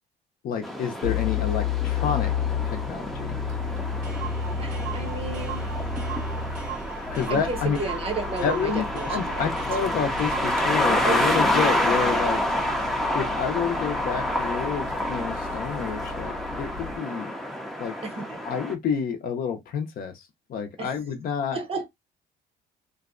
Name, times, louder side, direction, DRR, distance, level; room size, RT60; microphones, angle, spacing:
voice 1, 0.4-2.3 2.7-3.4 7.1-7.8 8.4-17.3 17.8-17.9 18.5-21.6, left 7 dB, 60° left, 0.6 m, -29 dB
sound 1, 0.6-18.7, left 1 dB, ahead, 0.5 m, -28 dB
sound 2, 1.0-17.0, left 7 dB, 80° right, 1.2 m, -33 dB
Clock, 3.5-3.6 3.8-3.9 4.0-10.7, right 9 dB, 55° right, 0.9 m, -39 dB
voice 2, 4.6-5.7 7.3-9.6 11.0-11.5 17.1-17.2 18.0-18.4 20.8-20.9 21.5-21.9, right 4 dB, 35° right, 0.7 m, -33 dB
2.6 x 2.1 x 2.4 m
cardioid pair, 110°, 17 cm